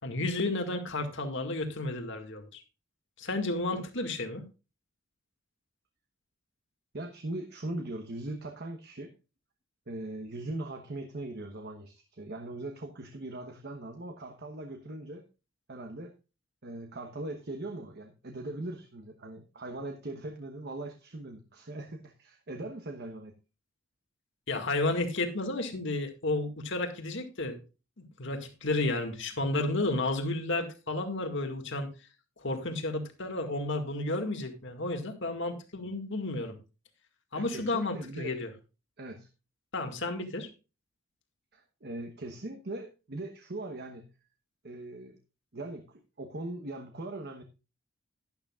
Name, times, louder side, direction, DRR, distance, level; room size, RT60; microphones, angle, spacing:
voice 1, 0.0-2.6 3.2-4.4 24.5-27.6 28.0-31.9 32.4-36.6 37.3-38.5 39.7-40.5, left 2 dB, 60° left, 6 dB, 2.0 m, -32 dB
voice 2, 6.9-9.1 9.9-15.2 15.7-16.1 16.6-23.3 37.3-38.3 39.0-39.3 41.5-44.1 44.6-45.2 45.5-47.4, right 2 dB, 50° right, 6 dB, 1.1 m, -40 dB
11.5 x 11.5 x 2.4 m, 0.30 s
head